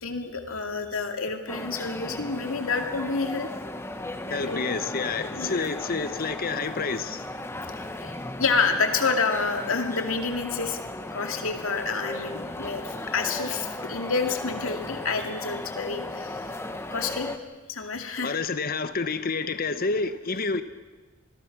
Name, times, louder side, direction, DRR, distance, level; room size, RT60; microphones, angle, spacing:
voice 1, 0.0-3.5 4.5-4.8 5.4-5.7 8.0-10.8 11.1-16.4 16.9-17.3 17.7-18.4, left 4 dB, 75° left, 2.4 m, -28 dB
sound 1, 1.5-17.4, left 1 dB, 10° left, 1.1 m, -36 dB
voice 2, 4.3-7.2 18.2-20.6, left 4 dB, 45° left, 1.0 m, -29 dB
26.5 x 20.5 x 6.1 m
head